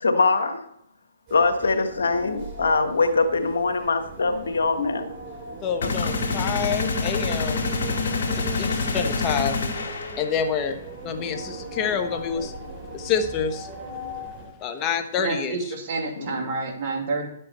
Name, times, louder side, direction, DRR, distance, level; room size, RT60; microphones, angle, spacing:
voice 1, 0.0-0.6 1.3-5.1 5.8-6.1 8.7-8.8 16.2-16.5, left 3 dB, 80° left, 7 dB, 1.4 m, -23 dB
sound 1, 1.3-14.5, right 2 dB, 35° right, 4.8 m, -39 dB
voice 2, 5.6-7.6 8.3-9.6 10.2-10.8 11.0-12.5 12.9-13.7 14.6-15.6, left 6 dB, 30° left, 7 dB, 1.2 m, -27 dB
sound 2, 5.8-10.6, left 3 dB, 65° left, 2.5 m, -26 dB
voice 3, 15.2-17.3, right 3 dB, 50° right, 2 dB, 2.7 m, -29 dB
11.5 x 7.8 x 4.3 m, 0.74 s
hypercardioid pair, 135°, 0 cm